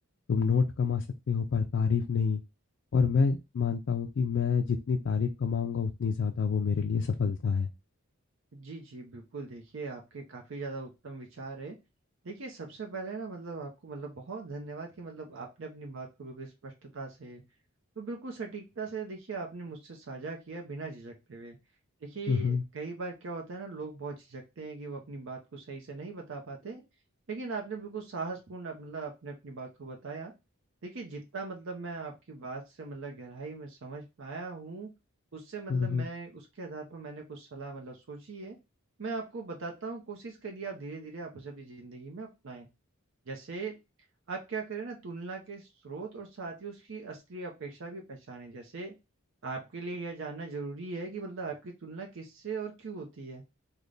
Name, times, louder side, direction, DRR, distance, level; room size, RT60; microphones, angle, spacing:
voice 1, 0.3-2.4 2.9-7.7 22.3-22.6 35.7-36.1, left 5 dB, 60° left, 5 dB, 0.4 m, -27 dB
voice 2, 8.5-11.8 12.2-17.4 18.0-21.6 22.0-26.8 27.3-30.3 30.8-34.9 35.3-38.6 39.0-42.7 43.3-43.8 44.3-48.9 49.4-53.4, right 4 dB, 65° right, 2 dB, 0.6 m, -40 dB
3.2 x 2.2 x 3.8 m, 0.24 s
head